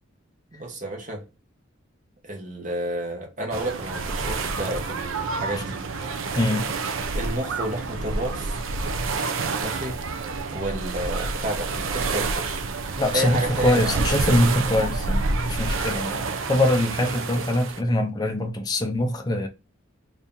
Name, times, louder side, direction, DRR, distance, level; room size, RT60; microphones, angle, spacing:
voice 1, 0.5-1.2 2.2-5.8 7.1-8.6 9.6-10.0 10.5-12.6 13.1-14.0, right 1 dB, 35° right, 0.9 m, -31 dB
sound 1, 3.5-17.8, right 3 dB, 75° right, 0.5 m, -28 dB
voice 2, 6.4-6.7 13.0-19.5, left 1 dB, 20° left, 0.4 m, -23 dB
2.8 x 2.7 x 3.5 m
head